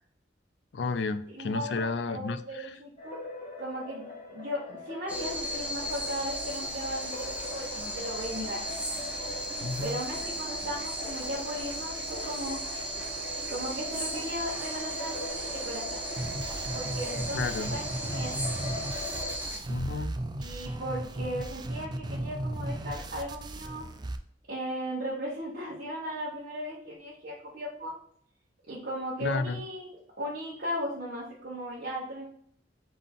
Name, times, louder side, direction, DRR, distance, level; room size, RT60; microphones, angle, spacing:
voice 1, 0.7-2.8 9.6-10.0 17.3-17.7 19.7-20.2 29.2-29.6, left 3 dB, 70° left, 12 dB, 0.4 m, -32 dB
voice 2, 1.3-3.2 3.6-4.0 4.3-8.6 9.8-12.6 13.5-16.0 16.7-18.4 20.4-23.8 24.5-27.9 28.7-29.9 30.2-32.3, equal, 60° right, -8 dB, 1.3 m, -36 dB
sound 1, 3.0-19.4, left 2 dB, 35° left, 1.5 m, -42 dB
sound 2, 5.1-19.6, right 1 dB, 10° right, 0.9 m, -36 dB
sound 3, 16.2-24.2, right 1 dB, 25° right, 0.3 m, -36 dB
3.8 x 3.6 x 3.7 m, 0.62 s
head